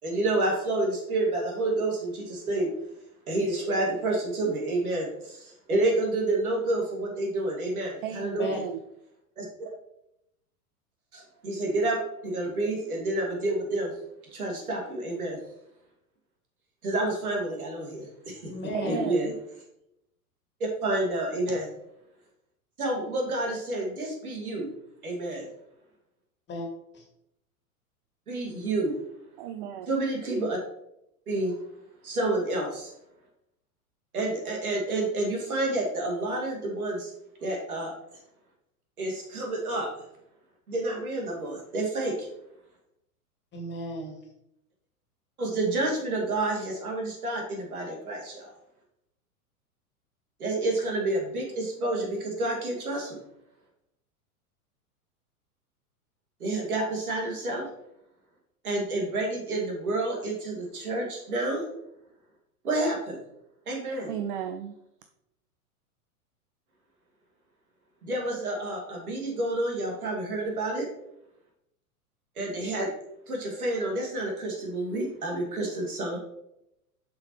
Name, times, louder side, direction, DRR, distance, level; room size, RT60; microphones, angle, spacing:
voice 1, 0.0-2.7 3.3-8.6 9.4-9.7 11.1-13.9 14.3-15.4 16.8-18.5 18.8-19.3 20.6-21.7 22.8-24.7 25.0-25.5 28.3-29.0 29.9-30.6 31.3-31.6 32.0-32.9 34.1-37.1 37.4-38.0 39.0-39.9 40.7-42.3 45.4-48.5 50.4-53.2 56.4-57.7 58.6-61.7 62.6-63.2 63.7-64.1 68.0-70.9 72.4-72.9 73.3-76.2, right 2 dB, 70° right, 0 dB, 2.3 m, -29 dB
voice 2, 8.0-8.8 18.7-19.3 29.4-29.9 64.1-64.8, right 9 dB, 35° right, 8 dB, 0.5 m, -34 dB
voice 3, 18.5-19.0 26.5-26.7 26.9-27.0 43.5-44.2, left 1 dB, 25° left, 1 dB, 2.0 m, -35 dB
7.2 x 6.0 x 3.1 m, 0.81 s
figure-of-eight pair, 95°, 45 cm